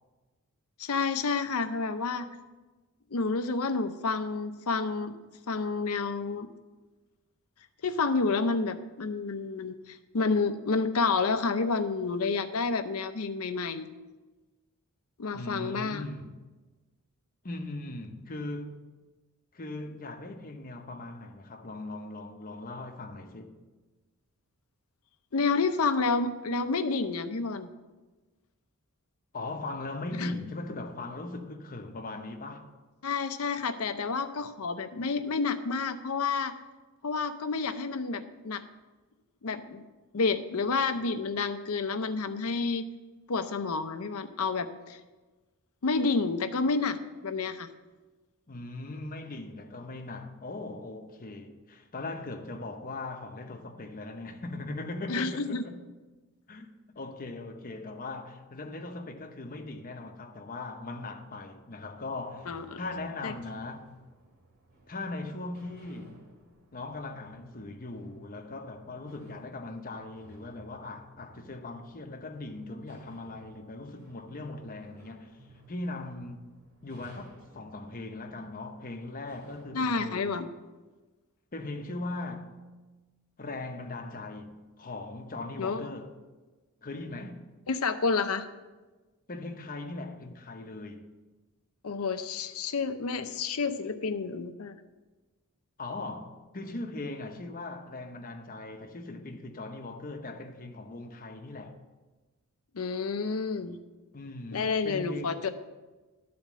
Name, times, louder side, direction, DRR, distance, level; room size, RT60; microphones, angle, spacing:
voice 1, 0.8-2.3 3.1-5.2 5.5-6.5 7.8-13.9 15.2-16.1 25.3-27.7 30.2-30.3 33.0-36.5 37.0-38.6 39.4-39.8 40.1-42.8 43.3-45.0 45.8-47.7 55.1-55.6 62.5-62.8 63.2-63.3 79.7-80.5 85.6-85.9 87.7-88.5 91.8-94.7 102.7-103.8 104.5-105.5, left 4 dB, 75° left, 0.7 m, -29 dB
voice 2, 15.3-16.4 17.4-18.7 19.5-23.6 29.3-32.7 48.5-55.8 56.5-64.0 64.9-66.2 66.7-75.3 75.7-76.5 76.8-80.4 81.5-82.6 83.4-86.1 86.8-87.4 89.3-91.1 95.8-101.8 104.1-105.4, left 2 dB, 40° left, 0.9 m, -39 dB
sound 1, 61.9-79.7, right 2 dB, 50° right, 2.3 m, -57 dB
11.5 x 4.3 x 7.3 m
head